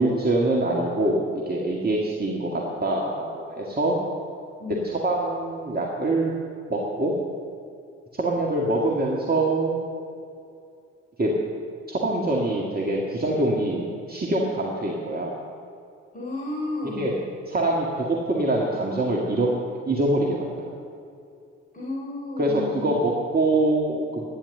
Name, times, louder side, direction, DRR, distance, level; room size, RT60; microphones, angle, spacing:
voice 1, 0.0-4.0 4.8-6.3 6.7-7.1 8.1-9.8 11.2-11.3 11.9-15.3 17.0-17.1 17.5-19.5 19.9-20.7 22.4-24.2, right 2 dB, 25° right, -3 dB, 2.1 m, -24 dB
voice 2, 4.6-4.9 16.1-17.2 21.7-22.9, left 2 dB, 25° left, -5 dB, 4.0 m, -32 dB
12.5 x 10.0 x 6.9 m, 2.5 s
figure-of-eight pair, 40°, 35 cm